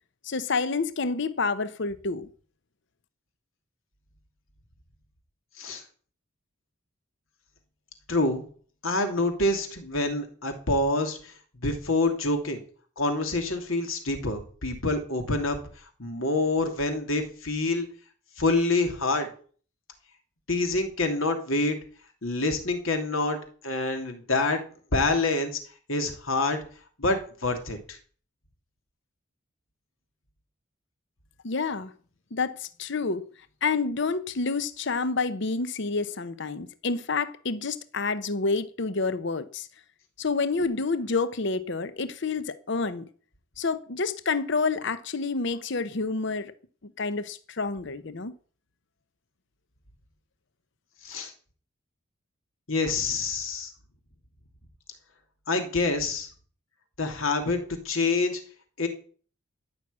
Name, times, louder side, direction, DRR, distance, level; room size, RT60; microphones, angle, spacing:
voice 1, 0.2-2.3 31.4-31.9 32.3-33.2 33.6-39.7 40.2-43.1 43.6-46.5 47.0-48.3, left 4 dB, 60° left, 0.8 m, -28 dB
voice 2, 8.1-8.4 8.8-11.3 11.6-12.6 13.0-15.6 16.0-17.9 18.4-19.3 20.5-21.8 22.2-23.4 23.6-24.6 24.9-25.6 25.9-26.6 27.0-28.0 51.0-51.3 52.7-53.7 55.5-56.3 57.0-58.4 58.8-58.9, left 2 dB, 80° left, 2.8 m, -26 dB
13.5 x 6.3 x 8.6 m
head